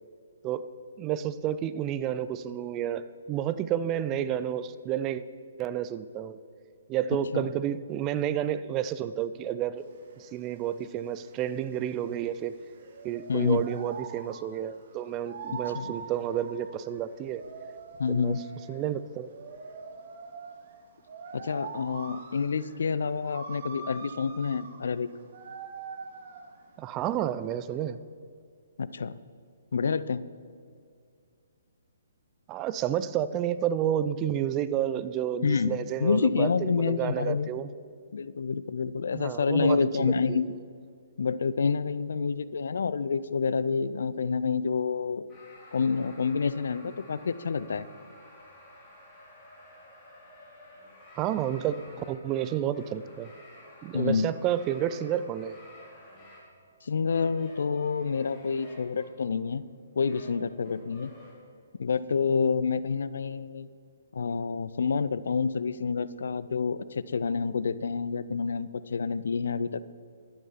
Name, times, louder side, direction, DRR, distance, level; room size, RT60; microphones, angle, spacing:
voice 1, 1.0-5.2 5.6-6.4 6.9-9.9 10.2-12.5 13.0-17.4 18.1-18.4 18.7-19.3 26.8-28.0 32.5-37.7 39.1-40.6 51.2-53.3 53.8-55.6, right 10 dB, 25° right, 14 dB, 0.4 m, -30 dB
sound 1, 9.8-27.8, right 5 dB, 45° right, 1.2 m, -44 dB
voice 2, 13.3-13.7 15.5-15.9 18.0-18.4 21.3-25.1 28.8-29.1 29.7-30.2 35.4-37.5 38.1-40.5 41.2-45.2 45.7-47.9 53.9-54.3 56.8-59.6 60.0-61.1 61.8-63.7 64.1-69.8, left 5 dB, 60° left, 16 dB, 0.4 m, -28 dB
sound 2, 45.3-56.5 57.1-59.1 59.8-61.4, left 1 dB, 15° left, 3.2 m, -52 dB
11.5 x 8.9 x 5.6 m, 2.2 s
figure-of-eight pair, 130°, 0 cm